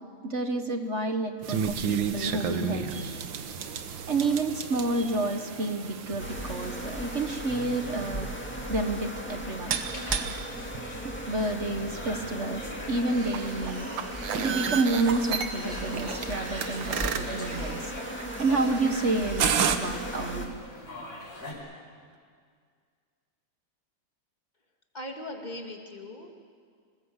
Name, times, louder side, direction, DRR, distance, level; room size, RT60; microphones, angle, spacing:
voice 1, 0.2-3.2 4.1-8.3 8.7-9.8 11.0-13.9 14.4-20.6, right 2 dB, 40° right, 6 dB, 1.3 m, -29 dB
sound 1, 1.4-19.8, right 7 dB, 70° right, 1.9 m, -33 dB
sound 2, 1.7-21.5, left 1 dB, 40° left, 6.4 m, -45 dB
sound 3, 6.2-20.5, equal, 5° left, 2.0 m, -37 dB
voice 2, 24.9-26.3, left 1 dB, 20° left, 2 dB, 2.4 m, -39 dB
27.5 x 20.0 x 8.1 m, 2.1 s
omnidirectional pair, 2.2 m